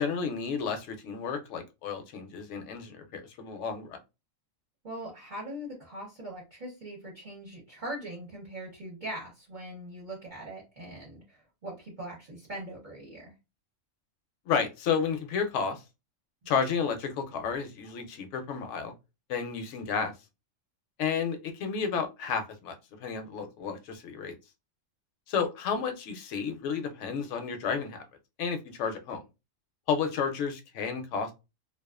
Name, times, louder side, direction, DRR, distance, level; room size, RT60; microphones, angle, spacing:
voice 1, 0.0-4.0 14.5-15.8 16.5-18.9 19.3-20.1 21.0-22.7 23.0-24.3 25.3-28.0 28.4-29.2 29.9-31.3, left 6 dB, 70° left, 7 dB, 0.9 m, -31 dB
voice 2, 4.8-13.3, right 1 dB, 45° right, -4 dB, 0.8 m, -41 dB
2.3 x 2.3 x 2.3 m, 0.26 s
omnidirectional pair, 1.3 m